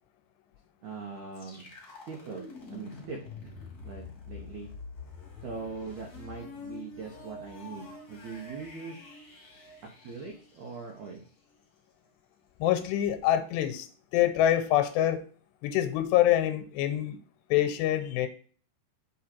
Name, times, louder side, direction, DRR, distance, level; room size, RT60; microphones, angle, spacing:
voice 1, 0.8-1.7 2.1-3.5 3.8-4.7 5.4-9.0 10.0-11.2, right 4 dB, 75° right, 0 dB, 1.8 m, -41 dB
sound 1, 1.3-11.2, left 3 dB, 30° left, 1.9 m, -46 dB
voice 2, 12.6-13.9 14.1-15.2 15.6-17.2 17.5-18.3, left 12 dB, 90° left, 9 dB, 2.9 m, -25 dB
6.4 x 4.8 x 4.4 m, 0.43 s
omnidirectional pair, 4.9 m